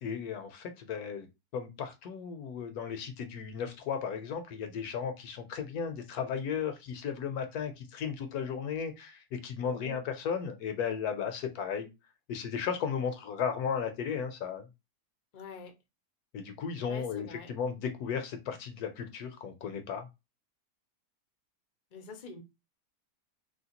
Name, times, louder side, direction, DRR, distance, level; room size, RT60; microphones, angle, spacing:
voice 1, 0.0-1.3 1.5-11.9 12.3-14.7 16.3-20.1, left 7 dB, 70° left, 1.0 m, -35 dB
voice 2, 9.6-10.0 15.3-15.7 16.9-17.5 21.9-22.4, left 3 dB, 50° left, 0.5 m, -45 dB
3.0 x 2.8 x 2.8 m
omnidirectional pair, 1.8 m